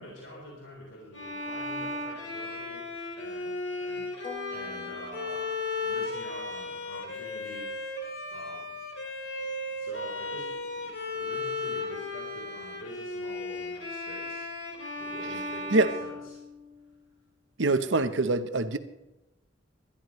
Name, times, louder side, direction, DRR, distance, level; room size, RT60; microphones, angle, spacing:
voice 1, 0.0-2.9 3.2-4.1 4.5-5.5 5.7-7.7 8.3-8.8 9.7-14.5 15.0-16.4, equal, 85° left, -3 dB, 3.8 m, -46 dB
Bowed string instrument, 1.1-16.9, left 2 dB, 65° left, 1.9 m, -36 dB
sound 1, 4.2-6.2, left 2 dB, 25° left, 2.7 m, -46 dB
voice 2, 17.6-18.8, right 2 dB, 70° right, 10 dB, 0.9 m, -24 dB
19.5 x 12.5 x 3.2 m, 0.97 s
head